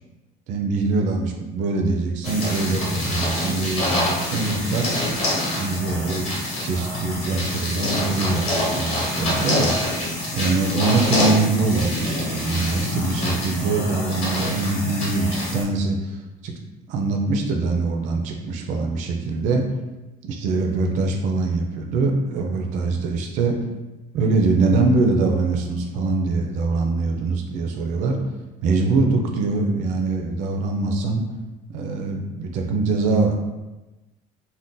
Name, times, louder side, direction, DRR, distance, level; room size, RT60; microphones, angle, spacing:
voice 1, 0.5-4.9 5.5-9.8 10.3-16.5 16.9-19.6 20.2-23.6 24.1-28.2 28.6-31.2 31.7-33.3, right 3 dB, 45° right, 2 dB, 0.4 m, -23 dB
sound 1, 2.2-15.6, left 1 dB, 35° left, 0.9 m, -26 dB
2.5 x 2.1 x 3.6 m, 1.1 s
cardioid pair, 170°, 17 cm